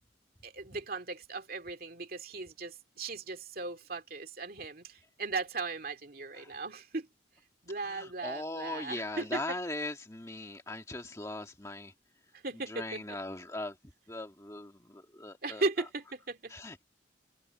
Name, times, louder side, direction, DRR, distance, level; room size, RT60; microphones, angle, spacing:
voice 1, 0.4-7.1 7.6-9.6 12.3-13.2 15.4-16.6, right 3 dB, 55° right, 2.3 m, -37 dB
voice 2, 7.8-11.9 12.7-13.8 14.1-15.6 16.5-16.8, left 2 dB, 15° left, 1.7 m, -39 dB
open air
head